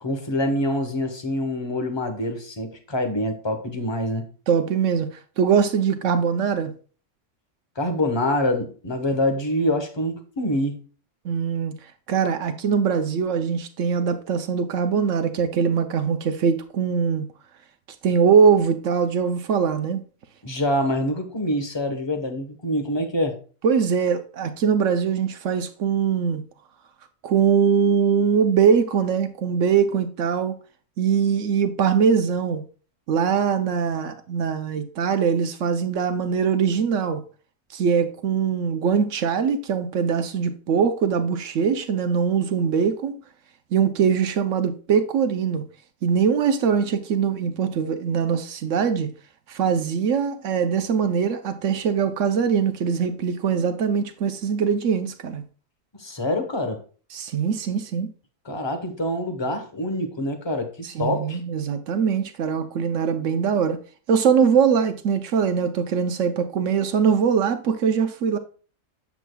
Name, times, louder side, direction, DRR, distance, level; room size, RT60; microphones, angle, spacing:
voice 1, 0.0-4.3 7.8-10.8 20.4-23.4 56.0-56.8 58.4-61.4, left 1 dB, 25° left, 1.0 m, -25 dB
voice 2, 4.5-6.7 11.2-11.7 12.1-17.2 18.0-20.0 23.6-26.4 27.2-30.5 31.0-32.6 33.1-37.2 37.7-43.2 43.7-45.6 46.0-49.1 49.5-55.4 57.1-58.1 60.8-63.8 64.1-68.4, right 6 dB, 75° right, 1.0 m, -22 dB
8.2 x 7.2 x 2.3 m
omnidirectional pair, 1.3 m